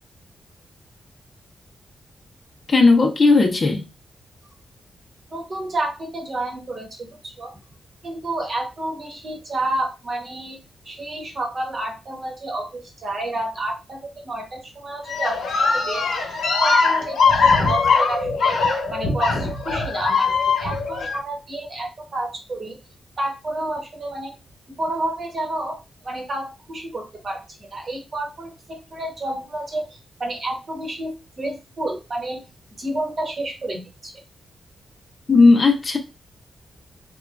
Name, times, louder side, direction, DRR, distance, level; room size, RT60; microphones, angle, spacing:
voice 1, 2.7-3.8 35.3-36.0, left 3 dB, 40° left, 0.6 m, -15 dB
voice 2, 5.3-7.5 8.0-10.6 10.8-22.8 23.2-24.3 24.8-25.8 26.0-32.4 32.8-34.1, right 1 dB, 50° right, 1.1 m, -30 dB
sound 1, 15.1-21.2, left 4 dB, 90° left, 0.9 m, -21 dB
2.9 x 2.2 x 2.4 m
cardioid pair, 85°, 0 cm